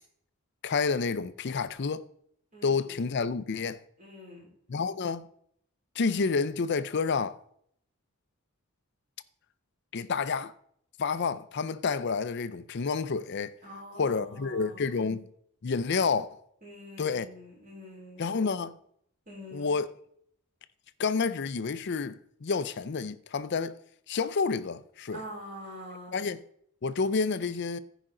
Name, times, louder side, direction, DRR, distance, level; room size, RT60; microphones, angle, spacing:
voice 1, 0.6-2.0 2.6-3.8 4.7-5.3 6.0-7.4 9.9-10.5 11.0-13.5 14.0-15.2 15.6-16.4 17.0-17.3 18.2-18.8 19.5-19.9 21.0-23.7 24.1-25.2 26.1-26.4 26.8-27.8, left 4 dB, 55° left, 0.5 m, -29 dB
voice 2, 2.5-3.0 4.0-4.5 13.6-15.1 16.6-18.4 19.3-19.8 25.1-26.2, equal, 40° right, 4.5 m, -45 dB
15.0 x 5.1 x 3.8 m
head